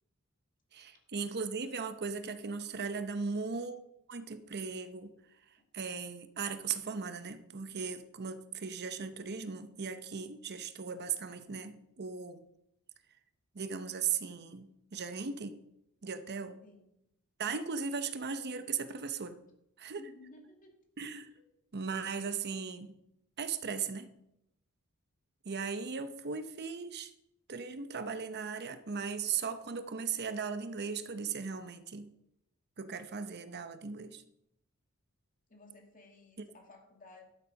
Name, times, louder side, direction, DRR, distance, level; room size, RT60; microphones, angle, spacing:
voice 1, 0.7-3.8 4.1-5.1 5.7-12.4 13.5-15.6 16.0-16.6 17.4-19.4 19.8-20.0 21.0-21.3 21.7-22.9 23.4-24.1 25.4-27.1 27.5-32.1 32.8-34.2, right 5 dB, 50° right, 10 dB, 0.8 m, -37 dB
voice 2, 16.6-17.0 20.0-20.8 21.3-21.4 35.5-37.2, left 2 dB, 40° left, 2 dB, 2.2 m, -56 dB
12.0 x 7.4 x 5.3 m, 0.80 s
head